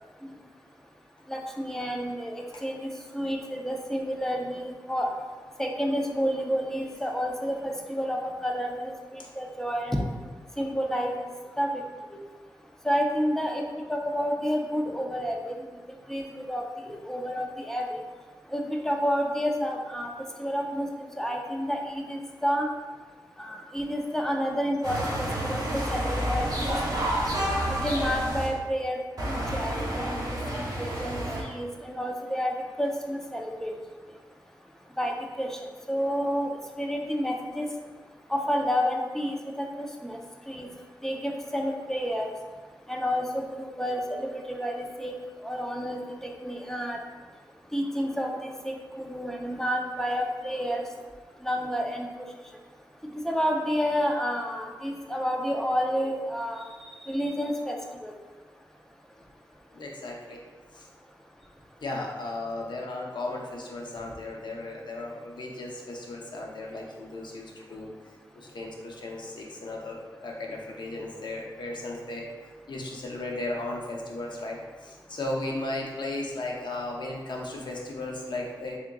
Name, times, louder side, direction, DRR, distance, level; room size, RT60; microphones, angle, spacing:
voice 1, 1.3-5.1 5.6-8.9 9.4-10.0 10.6-11.1 11.6-11.8 12.8-13.6 13.9-15.6 16.1-18.0 18.5-20.1 20.4-20.9 21.2-22.7 23.4-27.0 27.7-29.0 29.3-30.2 30.6-33.8 35.0-35.5 35.9-37.7 38.3-40.2 40.5-40.7 41.0-42.3 42.9-45.1 45.4-47.0 47.7-50.8 51.4-52.1 53.2-56.6 57.0-57.8 58.0-58.1, equal, 5° left, 1 dB, 0.5 m, -30 dB
sound 1, 24.8-28.5 29.2-31.4, right 1 dB, 50° right, 0.9 m, -29 dB
voice 2, 59.7-60.4 60.7-60.9 61.8-67.9 68.3-72.2 72.7-78.8, left 2 dB, 65° left, -1 dB, 0.7 m, -35 dB
3.6 x 3.6 x 2.3 m, 1.4 s
wide cardioid pair, 70°, 8 cm